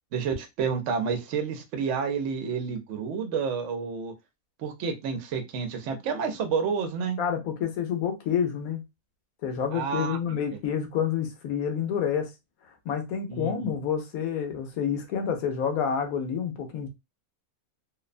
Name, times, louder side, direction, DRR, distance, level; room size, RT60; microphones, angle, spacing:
voice 1, 0.1-4.1 4.6-7.2 9.7-10.2 10.5-10.6 13.3-13.7, right 6 dB, 65° right, 0.9 m, -30 dB
voice 2, 7.2-8.8 9.4-12.3 12.9-16.9, left 7 dB, 85° left, 1.1 m, -28 dB
2.7 x 2.1 x 2.4 m
omnidirectional pair, 1.5 m